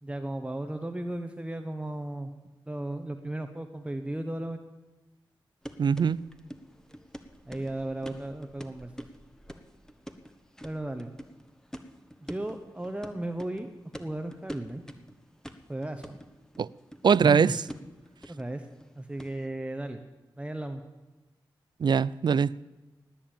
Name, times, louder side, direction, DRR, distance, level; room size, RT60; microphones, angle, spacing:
voice 1, 0.0-2.3 2.7-4.6 7.5-8.9 10.6-11.1 12.2-13.7 14.0-14.8 15.7-16.2 17.2-17.6 18.3-18.7 18.9-20.0 20.4-20.8, right 1 dB, 15° right, 1.0 m, -35 dB
sound 1, 5.6-19.5, equal, 5° left, 1.4 m, -46 dB
voice 2, 5.8-6.2 16.6-16.7 17.0-17.5 21.8-22.6, right 6 dB, 60° right, 0.4 m, -22 dB
18.5 x 7.3 x 8.9 m
cardioid pair, 50°, 9 cm